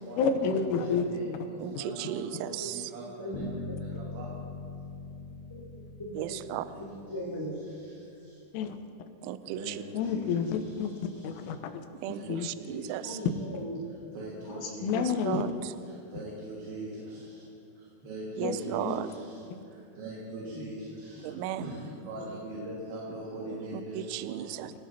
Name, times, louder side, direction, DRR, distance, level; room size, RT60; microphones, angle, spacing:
voice 1, 0.2-1.1 8.5-8.8 10.0-10.9 11.2-11.8 12.3-12.5 14.8-15.4 18.4-18.5 18.9-19.0, left 6 dB, 85° left, 7 dB, 3.4 m, -29 dB
voice 2, 0.8-1.2 1.8-3.6 4.1-4.3 6.7-6.9 9.6-10.3 12.1-13.2 14.2-14.9 16.1-17.2 18.1-19.1 20.0-24.4, right 1 dB, 65° right, -5 dB, 4.0 m, -41 dB
voice 3, 1.6-2.9 6.2-6.7 9.2-9.8 12.0-13.2 14.9-15.8 18.4-19.1 21.2-21.7 23.9-24.7, right 12 dB, 85° right, 13 dB, 2.8 m, -35 dB
voice 4, 2.4-2.7 3.1-3.8 5.5-5.6 6.0-6.4 6.8-7.6 13.0-13.8 14.3-14.7 20.5-20.6 22.2-22.4 23.4-23.5, equal, 10° left, -6 dB, 1.9 m, -39 dB
Bass guitar, 3.3-7.4, left 4 dB, 70° left, 3.5 m, -41 dB
26.0 x 17.0 x 2.9 m, 2.8 s
omnidirectional pair, 5.8 m